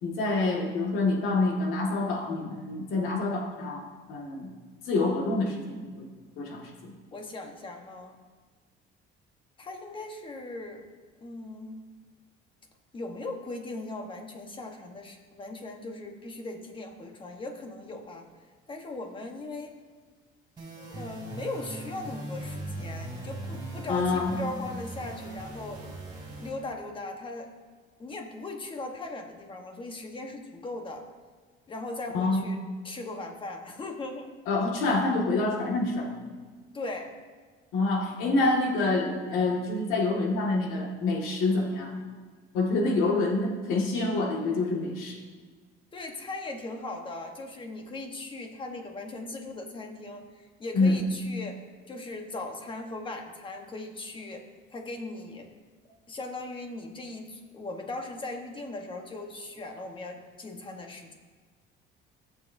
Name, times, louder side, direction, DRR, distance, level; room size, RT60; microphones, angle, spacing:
voice 1, 0.0-3.8 4.1-4.5 4.9-6.1 6.4-7.0 23.9-24.4 32.1-32.4 34.5-36.1 37.7-41.9 42.5-45.2 50.7-51.0, left 3 dB, 85° left, 0 dB, 1.8 m, -27 dB
voice 2, 7.1-8.2 9.6-10.9 11.2-11.9 12.9-18.3 18.7-19.7 20.8-25.8 26.4-27.5 28.0-31.0 31.7-34.3 36.7-37.2 45.9-51.6 51.9-55.5 56.1-61.1, left 2 dB, 25° left, 4 dB, 1.1 m, -39 dB
sound 1, 20.6-26.5, right 2 dB, 20° right, 3.2 m, -39 dB
16.5 x 7.2 x 2.7 m, 1.5 s
cardioid pair, 140°, 21 cm